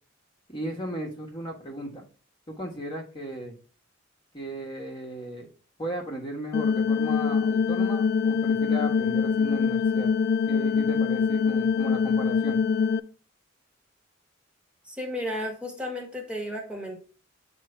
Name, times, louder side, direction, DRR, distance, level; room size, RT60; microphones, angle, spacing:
voice 1, 0.5-2.0 2.5-3.5 4.3-5.5 5.8-10.1 10.5-12.6, equal, 25° left, -1 dB, 1.3 m, -36 dB
sound 1, 6.5-13.0, left 6 dB, 55° left, 0.3 m, -24 dB
voice 2, 14.9-17.0, left 1 dB, 5° right, 0 dB, 1.4 m, -33 dB
8.3 x 3.1 x 4.4 m, 0.39 s
head